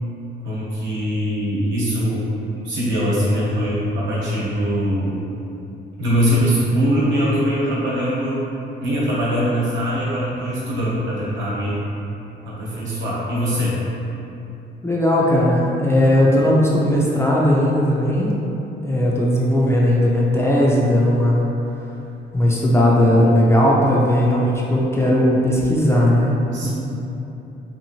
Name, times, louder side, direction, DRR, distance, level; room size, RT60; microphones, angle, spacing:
voice 1, 0.4-2.3 2.6-5.2 6.0-8.5 8.8-11.8 12.4-13.8 26.5-26.7, equal, 70° right, -8 dB, 1.0 m, -22 dB
voice 2, 14.8-18.3 18.8-21.5 22.3-26.4 26.6-26.7, left 1 dB, 15° left, -5 dB, 0.4 m, -17 dB
2.9 x 2.5 x 2.7 m, 2.9 s
cardioid pair, 90°, 20 cm